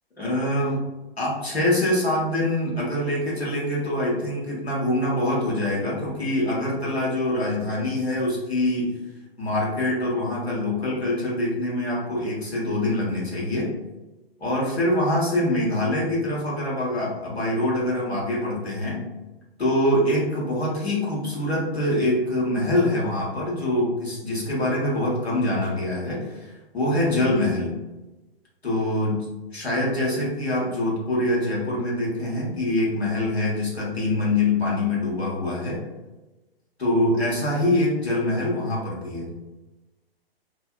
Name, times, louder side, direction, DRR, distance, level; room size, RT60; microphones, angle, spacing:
voice 1, 0.2-0.8 1.2-8.9 9.4-13.7 14.4-19.0 19.6-27.7 28.6-29.2 29.5-35.8 36.8-39.3, left 1 dB, 85° left, -5 dB, 1.1 m, -24 dB
2.6 x 2.4 x 2.2 m, 1.1 s
figure-of-eight pair, 120°, 31 cm